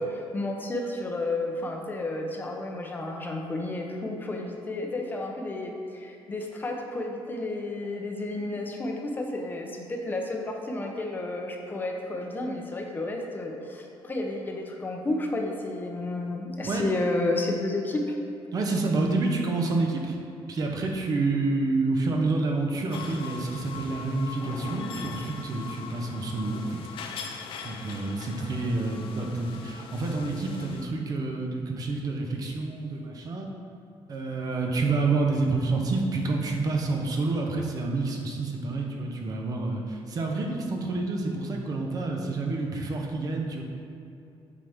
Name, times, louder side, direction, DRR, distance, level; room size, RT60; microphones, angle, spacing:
voice 1, 0.0-18.2, left 2 dB, 20° left, 1 dB, 0.8 m, -31 dB
voice 2, 18.5-20.2 20.5-26.8 27.1-33.5 34.1-43.6, right 3 dB, 40° right, 1 dB, 1.0 m, -28 dB
sound 1, 22.9-30.8, left 6 dB, 70° left, 0.6 m, -41 dB
8.3 x 5.9 x 3.6 m, 2.7 s
cardioid pair, 150°, 9 cm